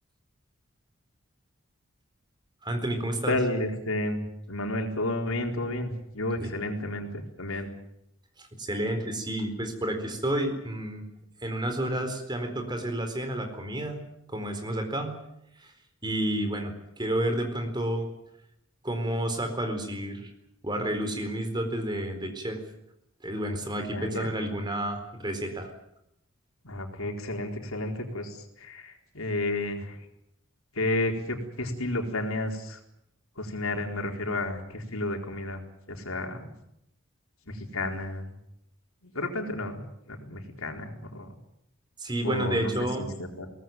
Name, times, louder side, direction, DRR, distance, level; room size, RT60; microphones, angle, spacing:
voice 1, 2.6-3.3 6.4-6.5 8.4-11.0 11.4-14.0 14.3-15.1 15.6-15.7 16.0-18.1 18.8-20.3 20.6-22.6 23.2-25.7 42.0-43.0, right 1 dB, 20° right, 6 dB, 4.2 m, -30 dB
voice 2, 3.3-7.7 23.9-24.3 26.6-30.0 30.7-32.8 33.4-35.6 35.9-36.5 37.5-38.3 39.0-39.8 40.1-41.3 42.2-42.7 43.0-43.5, left 1 dB, 80° left, 3 dB, 4.3 m, -31 dB
23.0 x 18.5 x 9.3 m, 0.80 s
head